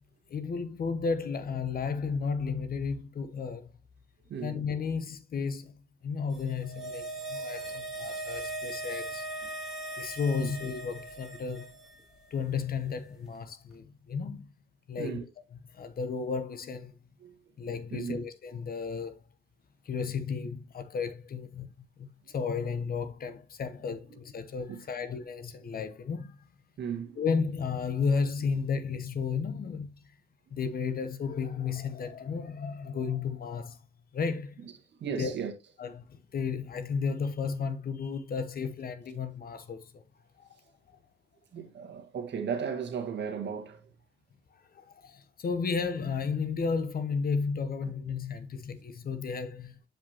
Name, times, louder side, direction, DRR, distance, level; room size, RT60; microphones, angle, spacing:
voice 1, 0.3-3.7 4.4-9.3 10.0-11.7 12.3-14.5 14.9-15.2 15.7-16.9 17.6-19.2 19.8-21.7 22.0-26.5 27.2-29.9 30.5-33.8 34.1-34.7 35.2-35.3 35.8-40.0 40.4-40.5 44.5-49.9, left 5 dB, 50° left, 0.9 m, -33 dB
voice 2, 4.3-4.6 7.3-7.8 9.4-9.5 10.4-10.5 15.0-15.3 17.2-17.4 17.9-18.2 23.9-24.2 24.7-25.1 26.8-27.2 34.6-35.5 41.5-43.9 47.8-47.9, right 7 dB, 60° right, 1.6 m, -37 dB
sound 1, 6.4-11.9 12.2-12.3, right 2 dB, ahead, 2.5 m, -39 dB
7.8 x 5.1 x 2.9 m
cardioid pair, 90°, 20 cm